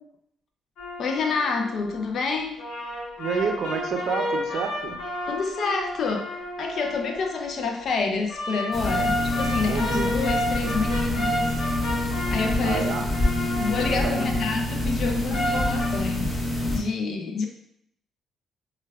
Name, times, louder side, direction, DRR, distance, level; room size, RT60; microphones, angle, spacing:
sound 1, 0.8-2.0 2.6-7.7 8.3-14.5 15.3-15.9, left 1 dB, 85° left, 0.7 m, -31 dB
voice 1, 1.0-2.6 5.3-11.5 12.3-12.9 13.6-16.4 16.7-17.5, left 4 dB, 60° left, 3 dB, 0.4 m, -28 dB
voice 2, 3.2-5.0 9.6-10.1 10.5-10.7 12.6-13.0 13.9-14.3, right 6 dB, 70° right, 4 dB, 0.4 m, -29 dB
sound 2, 8.7-16.8, left 1 dB, 25° left, 0.8 m, -26 dB
4.4 x 2.2 x 2.2 m, 0.72 s
cardioid pair, 90°, 0 cm